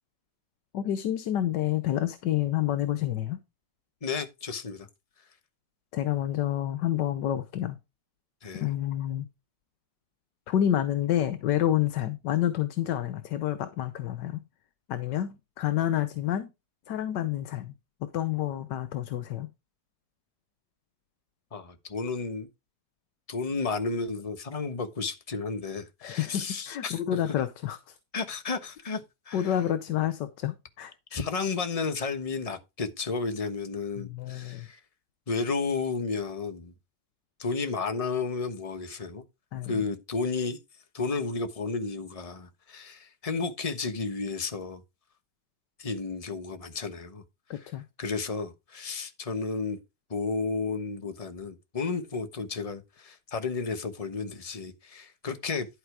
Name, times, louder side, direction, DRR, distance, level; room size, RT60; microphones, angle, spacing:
voice 1, 0.7-3.4 5.9-7.8 8.5-9.3 10.5-14.4 14.9-16.5 16.9-17.7 18.0-19.5 26.0-27.9 29.3-30.9 34.0-34.7 39.5-39.8 47.5-47.8, left 11 dB, 75° left, 1.5 m, -29 dB
voice 2, 4.0-4.9 8.4-8.7 21.5-22.5 23.3-27.0 27.3-27.4 28.1-29.5 31.1-34.8 35.3-36.7 37.4-39.2 39.7-40.6 40.9-44.8 45.8-47.2 47.6-47.7 48.0-49.8 50.1-55.7, left 4 dB, 25° left, 1.1 m, -32 dB
11.5 x 4.8 x 4.8 m
omnidirectional pair, 1.9 m